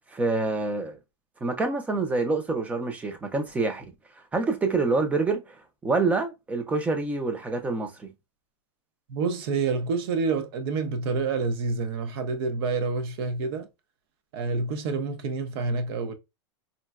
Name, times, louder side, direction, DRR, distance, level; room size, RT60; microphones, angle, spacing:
voice 1, 0.1-1.0 1.4-3.9 4.3-5.6 5.8-8.1, right 3 dB, 10° right, 0.4 m, -26 dB
voice 2, 9.1-13.7 14.3-16.1, right 4 dB, 55° right, 0.6 m, -28 dB
3.8 x 2.1 x 2.3 m
supercardioid pair, 145°, 15 cm